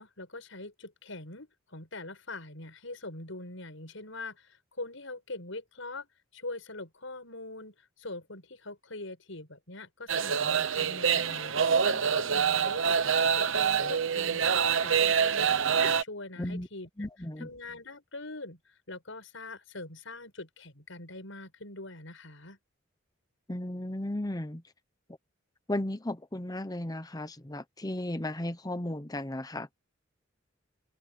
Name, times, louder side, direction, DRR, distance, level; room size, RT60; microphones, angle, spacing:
voice 1, 0.0-6.1 6.3-16.9 17.4-22.6, left 2 dB, 75° left, 7.0 m, -43 dB
sound 1, 10.1-16.0, right 7 dB, 75° right, 1.0 m, -26 dB
voice 2, 16.4-16.7 17.0-17.5 23.5-24.6 25.7-29.7, left 1 dB, 20° left, 1.0 m, -35 dB
open air
head